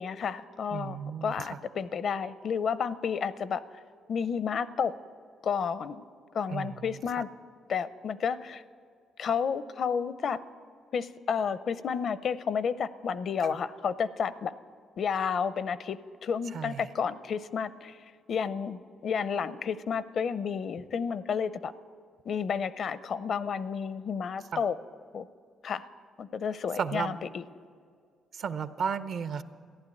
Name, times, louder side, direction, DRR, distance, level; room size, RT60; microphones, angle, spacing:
voice 1, 0.0-3.6 4.1-4.9 5.4-6.1 6.3-7.3 7.7-8.6 9.2-10.4 10.9-14.5 15.0-18.0 18.3-21.7 22.3-24.8 25.1-25.3 25.6-25.9 26.2-27.4, left 6 dB, 60° left, 15 dB, 0.5 m, -31 dB
voice 2, 0.7-1.6 6.5-7.0 16.5-16.9 24.5-24.6 26.8-27.1 28.3-29.4, right 6 dB, 60° right, 12 dB, 0.7 m, -34 dB
15.0 x 11.5 x 8.5 m, 2.1 s
cardioid pair, 90°, 0 cm